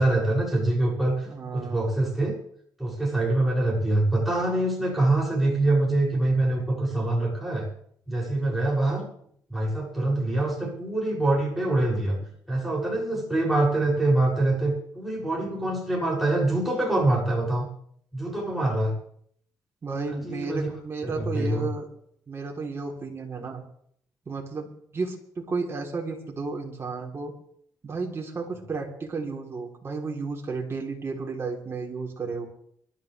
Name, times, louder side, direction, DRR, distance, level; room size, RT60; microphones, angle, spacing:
voice 1, 0.0-2.3 2.8-7.7 8.1-9.1 9.5-12.2 12.5-17.7 18.1-18.9 20.1-20.7 21.0-21.7, right 2 dB, ahead, -5 dB, 7.3 m, -25 dB
voice 2, 1.3-1.9 10.0-10.3 19.8-21.9 22.3-23.6 24.3-27.3 27.8-32.5, right 4 dB, 35° right, 0 dB, 3.6 m, -33 dB
24.5 x 12.5 x 3.5 m, 0.66 s
cardioid pair, 105°, 7 cm